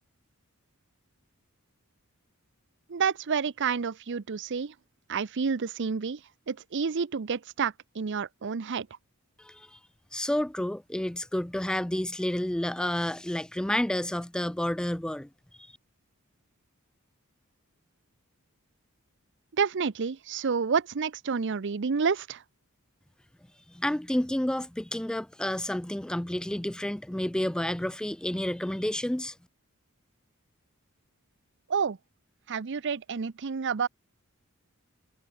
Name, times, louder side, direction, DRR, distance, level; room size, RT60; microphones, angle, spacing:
voice 1, 2.9-4.7 5.1-6.2 6.5-8.9 19.6-22.4 31.7-32.0 32.5-33.9, right 5 dB, 55° right, 0.6 m, -29 dB
voice 2, 9.4-9.8 10.1-15.3 15.6-15.7 23.7-29.3, left 1 dB, 5° left, 0.3 m, -30 dB
head